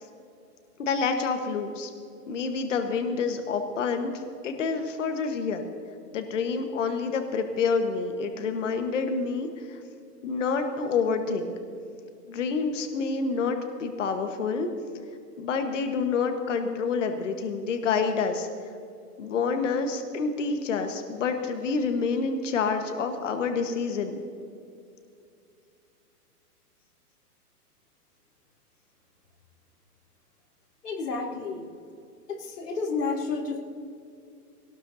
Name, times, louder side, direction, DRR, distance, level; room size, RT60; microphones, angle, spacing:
voice 1, 0.8-1.9 2.3-5.6 6.1-9.8 10.2-11.5 12.3-14.7 15.4-18.5 19.2-24.2, left 5 dB, 50° left, 6 dB, 1.3 m, -28 dB
voice 2, 30.8-31.7 32.3-33.6, left 4 dB, 80° left, -1 dB, 3.6 m, -30 dB
18.5 x 18.0 x 2.7 m, 2.5 s
hypercardioid pair, 175°, 47 cm